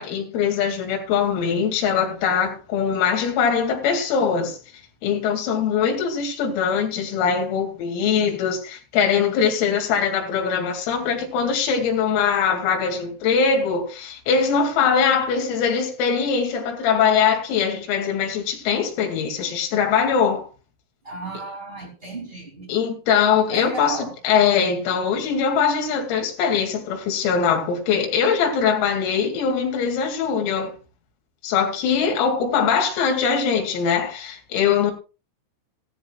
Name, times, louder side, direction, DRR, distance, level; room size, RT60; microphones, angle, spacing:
voice 1, 0.0-4.6 5.0-20.5 22.7-30.7 31.4-34.9, left 6 dB, 90° left, 5.1 m, -22 dB
voice 2, 21.0-22.7 23.5-24.1, right 2 dB, 25° right, 1.3 m, -33 dB
16.5 x 14.0 x 2.3 m
omnidirectional pair, 5.9 m